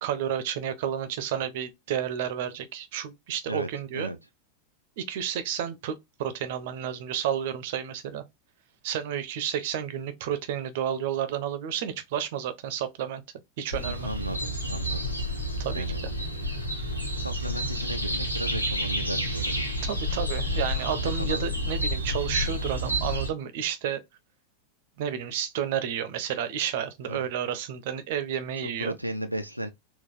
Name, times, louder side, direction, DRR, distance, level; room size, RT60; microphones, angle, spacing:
voice 1, 0.0-4.1 5.0-8.2 8.8-13.2 13.6-14.1 15.6-15.8 19.8-24.0 25.0-29.0, right 9 dB, 50° right, 0.6 m, -31 dB
voice 2, 3.5-4.2 13.8-15.2 15.7-16.0 16.9-19.7 20.1-20.7 21.0-21.5 27.1-27.3 28.6-29.7, right 1 dB, 90° right, 0.4 m, -35 dB
sound 1, 13.7-23.3, equal, 90° left, 1.0 m, -30 dB
3.8 x 2.4 x 2.4 m
figure-of-eight pair, 90°, 0 cm